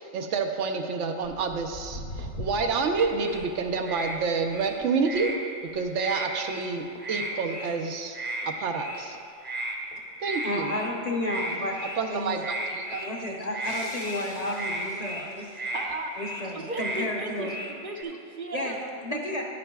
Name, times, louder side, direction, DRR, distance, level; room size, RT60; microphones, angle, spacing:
voice 1, 0.1-5.3 5.7-8.2 8.5-9.2 10.2-10.7 12.0-13.1, right 4 dB, 90° right, 4 dB, 1.0 m, -28 dB
Walk footsteps, 1.2-7.9 8.2-8.6 9.1-9.2 9.9-10.0 10.4-10.5 10.7-10.8 11.3-11.5 12.2-13.8 14.3-14.4 15.2-15.3 15.7-15.9 16.6-16.7, equal, 55° left, 1.1 m, -43 dB
sound 1, 3.0-3.4 3.8-4.2 4.5-5.4 5.9-6.7 7.0-7.7 8.1-8.5 8.7-9.0 9.4-9.8 10.2-10.9 11.2-12.1 12.4-13.1 13.5-14.2 14.5-15.3 15.5-15.9 16.1-16.5 16.7-17.1 17.4-18.0, right 1 dB, 10° right, 0.6 m, -34 dB
voice 2, 10.4-11.8 12.1-12.5 12.9-15.4 16.2-17.6 17.9-18.0 18.5-18.7 19.0-19.4, left 1 dB, 40° left, -1 dB, 0.8 m, -32 dB
sound 2, 13.6-15.7, left 1 dB, 70° left, 1.7 m, -46 dB
voice 3, 15.7-16.1 16.5-19.4, right 2 dB, 55° right, 3 dB, 0.7 m, -36 dB
11.0 x 9.4 x 2.3 m, 2.5 s
omnidirectional pair, 1.2 m